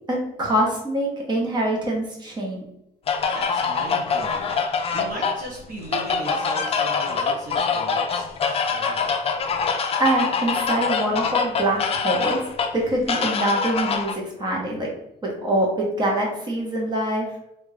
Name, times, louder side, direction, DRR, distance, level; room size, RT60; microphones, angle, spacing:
voice 1, 0.1-2.6 10.0-12.4 12.7-14.9 15.2-17.3, right 1 dB, 25° right, -2 dB, 1.2 m, -24 dB
sound 1, 3.1-14.1, left 5 dB, 35° left, 0.5 m, -24 dB
voice 2, 3.3-4.6 4.9-9.1, right 1 dB, 55° right, -3 dB, 0.9 m, -37 dB
3.3 x 2.6 x 3.3 m, 0.81 s
cardioid pair, 110°, 17 cm